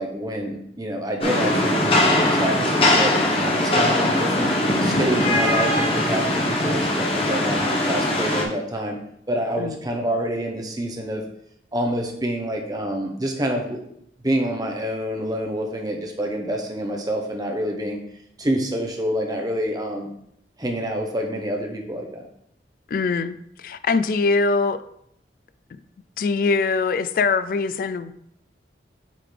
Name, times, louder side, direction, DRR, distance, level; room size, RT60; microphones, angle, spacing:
voice 1, 0.0-3.1 3.4-4.5 4.8-9.0 9.3-11.2 11.7-13.8 14.2-18.0 18.4-20.1 20.6-22.3, right 1 dB, 20° right, 2 dB, 0.8 m, -27 dB
Rain, 1.2-8.4, left 1 dB, 30° left, 1.1 m, -21 dB
voice 2, 22.9-24.8 26.2-28.1, left 4 dB, 50° left, 13 dB, 0.3 m, -22 dB
8.3 x 3.8 x 3.3 m, 0.74 s
head